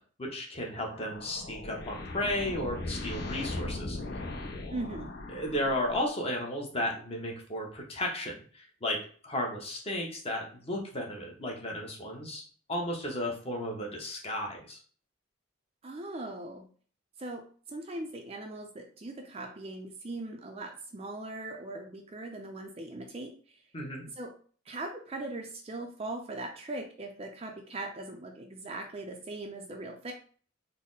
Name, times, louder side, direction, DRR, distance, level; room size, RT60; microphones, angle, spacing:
voice 1, 0.2-4.0 5.3-9.0 9.2-12.4 12.7-14.8 23.7-24.0, left 1 dB, 30° left, -1 dB, 0.8 m, -34 dB
sound 1, 0.7-6.2, left 2 dB, 50° left, 0.5 m, -39 dB
voice 2, 4.7-5.1 15.8-16.7 17.2-23.3 24.2-24.3 24.7-30.1, right 2 dB, 30° right, 3 dB, 0.4 m, -40 dB
4.0 x 2.0 x 3.8 m, 0.44 s
head